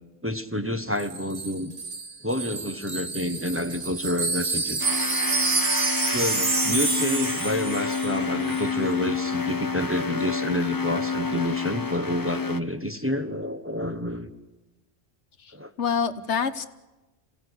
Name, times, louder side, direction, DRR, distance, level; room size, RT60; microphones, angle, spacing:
voice 1, 0.2-1.7 2.2-4.9 6.1-14.3 15.5-15.7, left 1 dB, 10° right, 7 dB, 1.2 m, -29 dB
Wind chime, 1.0-8.2 8.5-8.7, right 4 dB, 60° right, 2.0 m, -28 dB
sound 1, 4.8-12.6, left 5 dB, 20° left, 0.7 m, -29 dB
voice 2, 15.4-16.7, left 6 dB, 85° left, 10 dB, 1.5 m, -27 dB
27.0 x 17.5 x 8.1 m, 1.1 s
omnidirectional pair, 1.1 m